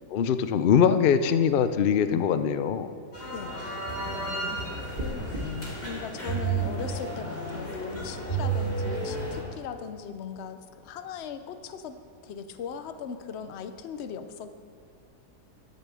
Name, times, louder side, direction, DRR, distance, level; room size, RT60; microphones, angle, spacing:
voice 1, 0.1-2.9, left 7 dB, 85° left, 11 dB, 0.4 m, -22 dB
sound 1, 3.1-9.4, right 3 dB, 35° left, 3.2 m, -32 dB
voice 2, 4.1-5.3 5.8-12.0 12.2-14.5, left 7 dB, 55° left, 10 dB, 0.8 m, -39 dB
sound 2, 4.9-5.4, equal, 30° right, 1.7 m, -33 dB
12.0 x 6.8 x 7.5 m, 2.4 s
omnidirectional pair, 1.7 m